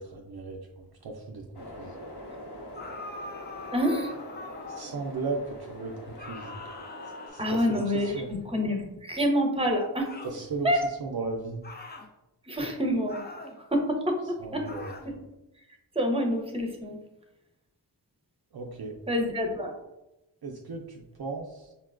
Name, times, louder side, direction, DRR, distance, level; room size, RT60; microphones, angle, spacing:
voice 1, 0.0-2.0 4.7-6.6 7.3-8.3 10.2-11.6 14.4-14.9 18.5-19.0 20.4-21.7, right 3 dB, 60° right, 1 dB, 0.5 m, -36 dB
sound 1, 1.5-7.3, left 1 dB, 65° left, 1.0 m, -44 dB
sound 2, 2.7-5.1 6.2-8.4 10.0-10.4 11.6-12.1 13.1-13.6 14.7-15.1, left 3 dB, 25° left, 0.5 m, -43 dB
voice 2, 3.7-4.1 7.4-10.1 10.6-10.8 12.5-13.2 13.7-14.7 15.0-15.1 15.9-17.0 19.1-19.7, equal, 15° right, 2 dB, 0.7 m, -27 dB
5.5 x 2.2 x 2.4 m, 0.95 s
wide cardioid pair, 55°, 42 cm